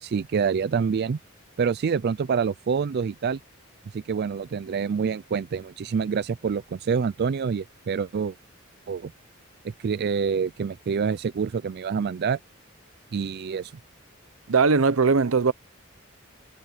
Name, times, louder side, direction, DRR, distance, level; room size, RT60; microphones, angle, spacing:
voice 1, 0.0-1.2 1.6-3.4 3.9-8.4 8.9-9.1 9.6-12.4 13.1-13.7, right 6 dB, 50° right, 0.4 m, -26 dB
voice 2, 14.5-15.5, right 4 dB, 75° right, 0.8 m, -19 dB
head